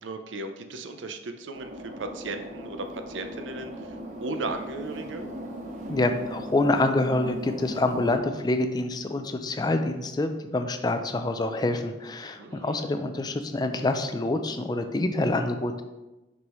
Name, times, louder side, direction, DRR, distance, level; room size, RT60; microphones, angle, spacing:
voice 1, 0.0-4.0 4.2-5.3 12.4-12.9, right 3 dB, 80° right, 7 dB, 0.6 m, -36 dB
sound 1, 1.6-8.2, right 1 dB, 40° right, 0.7 m, -38 dB
voice 2, 5.9-15.8, left 2 dB, 20° left, 7 dB, 0.4 m, -26 dB
6.0 x 5.4 x 3.0 m, 1.1 s
head